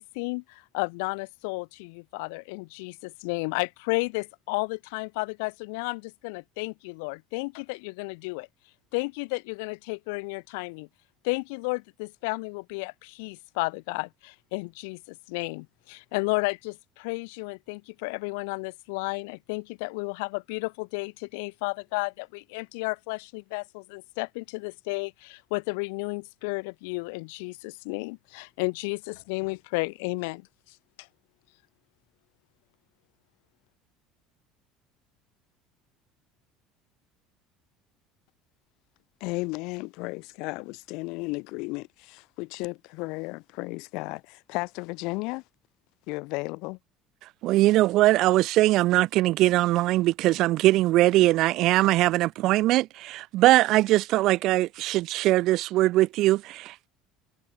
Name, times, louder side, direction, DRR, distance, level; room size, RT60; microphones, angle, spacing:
voice 1, 0.0-8.5 8.9-10.9 11.2-31.1, left 30 dB, 85° left, 1.9 m, -33 dB
voice 2, 39.2-45.4 46.1-46.8, left 26 dB, 70° left, 3.2 m, -34 dB
voice 3, 47.4-56.9, right 17 dB, 60° right, 1.1 m, -21 dB
cardioid pair, 135°, 0 cm